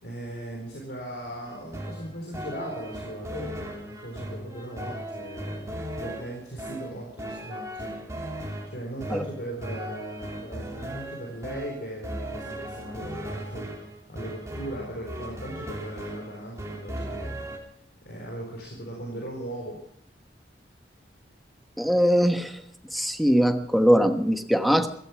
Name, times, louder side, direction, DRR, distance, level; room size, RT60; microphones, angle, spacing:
voice 1, 0.0-7.9 8.6-13.7 14.1-17.4 18.0-19.8, right 1 dB, 65° left, -1 dB, 4.3 m, -38 dB
sound 1, 1.4-17.6, right 1 dB, 15° right, 2.7 m, -37 dB
voice 2, 21.8-22.6 22.9-24.9, equal, ahead, 6 dB, 1.2 m, -21 dB
15.0 x 15.0 x 6.0 m, 0.68 s
head